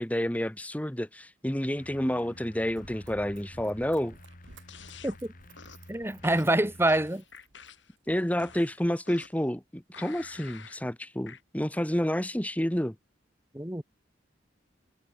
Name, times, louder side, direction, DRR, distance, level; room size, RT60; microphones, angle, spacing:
voice 1, 0.0-4.2 8.1-12.9, equal, 10° left, 1.2 m, -29 dB
sound 1, 1.8-7.1, left 1 dB, 45° left, 3.1 m, -51 dB
Run, 2.7-8.0 8.6-8.7, right 2 dB, 90° right, 7.0 m, -55 dB
sound 2, 4.7-5.2 5.6-5.9 6.2-8.0 8.4-9.5 9.9-10.8 11.3-11.4, left 6 dB, 75° left, 6.0 m, -49 dB
voice 2, 5.9-7.2 13.5-13.8, right 1 dB, 15° right, 1.7 m, -26 dB
head